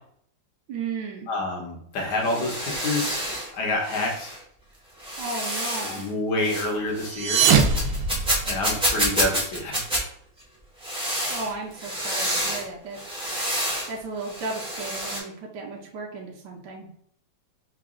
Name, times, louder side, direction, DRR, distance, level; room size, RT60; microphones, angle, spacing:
voice 1, 0.7-1.3 5.2-6.0 11.3-13.0 13.9-16.9, right 4 dB, 70° right, -1 dB, 1.3 m, -34 dB
voice 2, 1.3-3.3 3.5-4.4 5.8-7.4 8.5-9.8, left 2 dB, 65° left, 0 dB, 1.5 m, -28 dB
sound 1, 2.0-3.5 3.8-4.4 5.0-6.1 6.4-6.7 6.9-10.0 10.8-12.7 12.9-13.9 14.2-15.2, equal, 5° right, 0.6 m, -28 dB
sound 2, 7.0-8.9, right 5 dB, 85° right, 1.3 m, -22 dB
4.0 x 2.2 x 3.6 m, 0.66 s
omnidirectional pair, 2.0 m